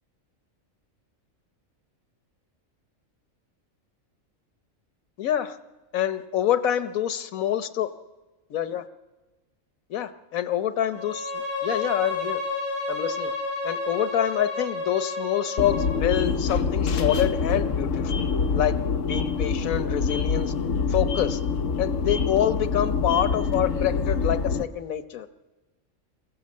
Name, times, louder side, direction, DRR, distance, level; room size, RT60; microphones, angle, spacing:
voice 1, 5.2-5.6 5.9-7.9 8.5-8.8 9.9-12.4 12.9-13.3 13.6-18.3 18.5-18.8 19.1-20.5 20.9-21.4 21.8-25.3, left 10 dB, 85° left, 11 dB, 1.3 m, -26 dB
Bowed string instrument, 10.9-16.1, left 3 dB, 50° left, 6.6 m, -31 dB
sound 1, 15.6-24.6, left 5 dB, 70° left, 1.4 m, -25 dB
22.5 x 15.5 x 7.6 m, 1.2 s
omnidirectional pair, 1.4 m